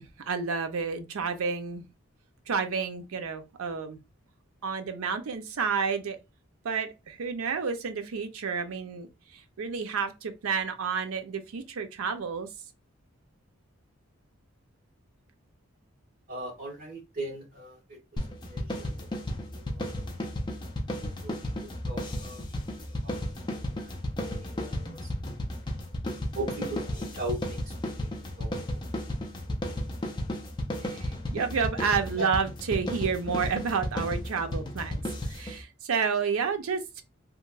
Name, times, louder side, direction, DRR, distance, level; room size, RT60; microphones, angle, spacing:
voice 1, 0.0-1.8 2.5-4.0 4.6-6.2 6.6-12.5 30.8-37.0, right 5 dB, 90° right, 0.5 m, -30 dB
voice 2, 16.3-17.7 18.5-18.9 19.7-19.8 21.0-21.4 21.9-22.4 23.0-23.2 23.8-23.9 26.3-27.9 28.4-28.8, right 1 dB, 40° right, 1.4 m, -38 dB
sound 1, 18.2-35.6, equal, 20° left, 0.4 m, -34 dB
2.9 x 2.5 x 2.3 m
head